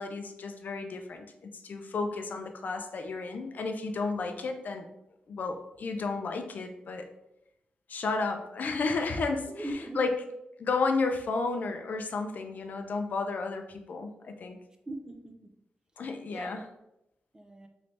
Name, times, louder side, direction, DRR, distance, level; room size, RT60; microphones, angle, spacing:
voice 1, 0.0-4.8 5.3-7.1 7.9-9.5 10.0-10.1 10.6-14.6 16.0-16.6, left 4 dB, 60° left, 5 dB, 0.4 m, -32 dB
voice 2, 9.5-10.2 14.9-15.5 16.3-16.6 17.3-17.7, right 1 dB, 20° right, 4 dB, 0.4 m, -40 dB
3.1 x 2.6 x 3.2 m, 0.84 s
wide cardioid pair, 100°, 3 cm